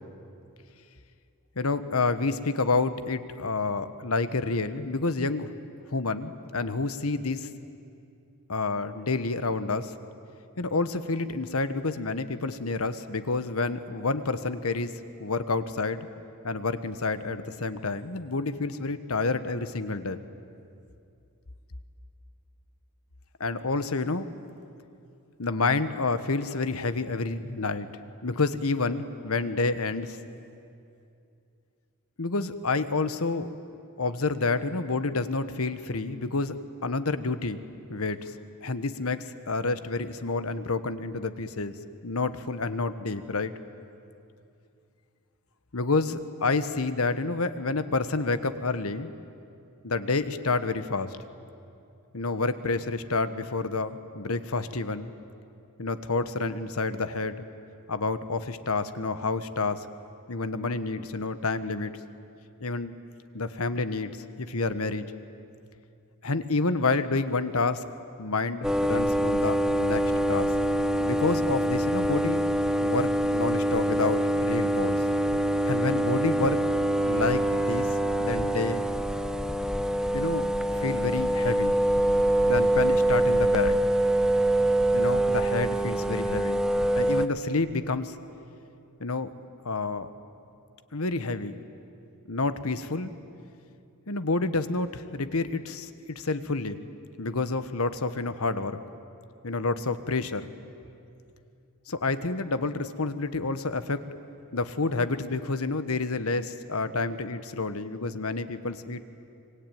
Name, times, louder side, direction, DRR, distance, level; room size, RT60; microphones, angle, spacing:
voice 1, 1.6-5.5 5.9-7.5 8.5-9.9 10.6-14.9 15.2-16.1 16.4-20.2 23.4-24.3 25.4-27.9 28.2-30.2 32.2-33.5 34.0-36.5 36.8-37.6 37.9-38.3 38.6-41.8 42.0-43.5 45.7-49.1 49.8-51.2 52.1-55.1 55.8-57.4 57.9-59.9 60.3-61.9 62.6-63.0 63.3-65.1 66.2-67.8 68.2-70.5 71.0-72.4 72.8-75.0 75.6-76.6 77.0-77.9 78.2-78.9 80.1-80.5 80.7-81.7 82.5-83.8 84.9-86.6 86.9-88.2 89.0-89.3 89.6-90.1 90.9-91.6 92.3-93.1 94.1-96.9 97.2-98.8 99.4-100.4 101.9-104.0 104.5-109.0, left 3 dB, 70° left, 12 dB, 1.2 m, -29 dB
sound 1, 68.6-87.3, right 1 dB, 5° right, 0.8 m, -25 dB
25.0 x 23.5 x 9.3 m, 2.6 s
head